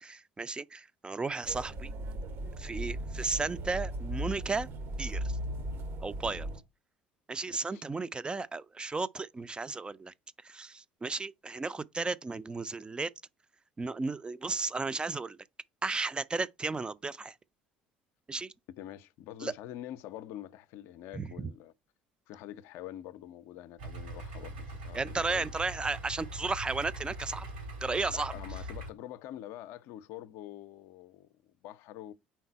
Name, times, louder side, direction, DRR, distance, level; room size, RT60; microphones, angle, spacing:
voice 1, 0.0-1.9 2.6-4.7 5.0-5.2 6.0-6.5 7.3-10.1 10.4-13.1 13.8-15.4 15.8-17.3 18.3-18.5 19.4-19.5 21.1-21.5 24.9-27.5 27.8-28.3, right 3 dB, 20° right, 0.4 m, -34 dB
sound 1, 1.4-6.6, right 1 dB, 50° right, 0.9 m, -37 dB
voice 2, 7.5-7.8 18.8-21.7 22.3-25.5 28.1-32.1, left 12 dB, 60° left, 0.4 m, -45 dB
Idling, 23.8-28.9, right 1 dB, 75° right, 3.3 m, -42 dB
4.5 x 3.9 x 5.6 m
figure-of-eight pair, 60°, 5 cm